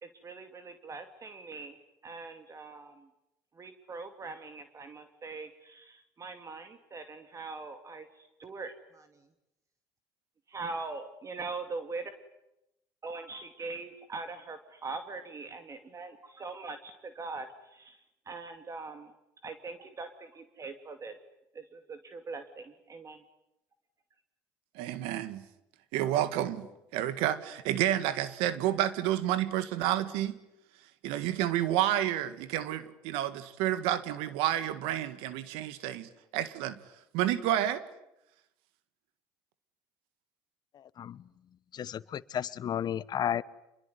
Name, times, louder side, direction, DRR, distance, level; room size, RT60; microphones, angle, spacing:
voice 1, 0.0-3.1 3.5-9.3 10.5-12.1 13.0-19.1 19.4-21.2 21.5-23.2, right 3 dB, 35° right, 7 dB, 2.6 m, -42 dB
voice 2, 24.7-25.4 25.9-26.7 26.9-30.4 31.0-36.8 37.1-37.8, right 12 dB, 80° right, 13 dB, 1.8 m, -30 dB
voice 3, 40.7-41.2 41.7-43.4, left 9 dB, 50° left, 17 dB, 1.1 m, -33 dB
26.5 x 22.5 x 9.6 m, 0.88 s
supercardioid pair, 80°, 9 cm